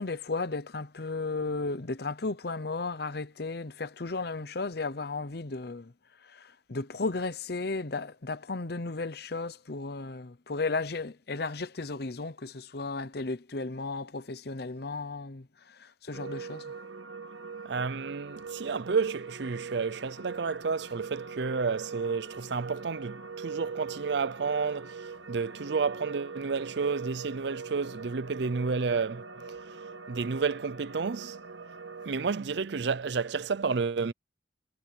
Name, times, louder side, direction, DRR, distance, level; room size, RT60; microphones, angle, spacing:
voice 1, 0.0-5.9 6.2-16.7, left 3 dB, 55° left, 0.8 m, -34 dB
sound 1, 16.1-32.1, right 5 dB, 85° right, 1.4 m, -42 dB
voice 2, 17.6-29.2 30.1-31.4 32.1-34.1, right 5 dB, 65° right, 0.5 m, -31 dB
head